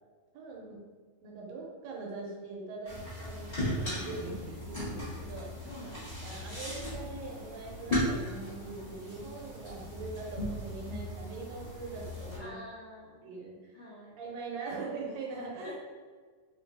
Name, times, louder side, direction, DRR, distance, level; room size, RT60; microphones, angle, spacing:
voice 1, 0.3-0.8 1.2-5.5 6.2-12.6 13.2-13.7 14.2-15.7, right 3 dB, 80° right, -2 dB, 1.8 m, -42 dB
sound 1, 2.9-12.4, left 1 dB, 25° left, 0.8 m, -37 dB
voice 2, 5.6-6.0 12.4-13.4 13.7-14.2 15.6-15.7, left 1 dB, 85° left, -7 dB, 1.1 m, -47 dB
5.3 x 2.7 x 2.5 m, 1.5 s
omnidirectional pair, 3.3 m